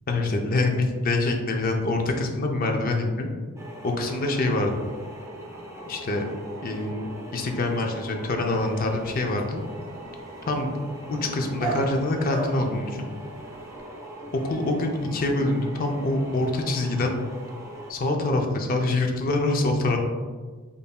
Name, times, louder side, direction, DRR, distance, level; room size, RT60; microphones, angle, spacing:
voice 1, 0.1-3.3 3.8-4.7 5.9-6.2 6.6-9.6 10.5-10.7 11.1-13.1 14.3-17.1 17.9-20.0, left 2 dB, 45° left, 3 dB, 0.5 m, -25 dB
sound 1, 3.6-17.9, right 1 dB, 15° right, 0.5 m, -41 dB
Dog, 8.5-13.8, right 2 dB, 30° right, 1.1 m, -38 dB
5.3 x 2.6 x 2.3 m, 1.4 s
head